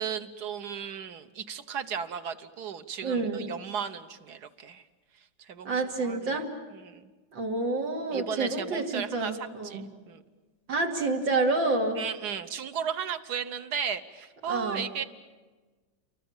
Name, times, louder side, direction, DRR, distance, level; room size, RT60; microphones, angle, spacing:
voice 1, 0.0-4.8 5.5-5.7 6.0-6.4 6.7-7.1 8.1-10.2 12.0-15.0, right 7 dB, 65° right, 10 dB, 1.5 m, -35 dB
voice 2, 3.0-3.5 5.6-6.5 7.3-9.8 10.7-12.0 14.5-14.8, right 3 dB, 85° right, 2 dB, 3.3 m, -28 dB
29.5 x 23.5 x 7.3 m, 1.3 s
omnidirectional pair, 2.0 m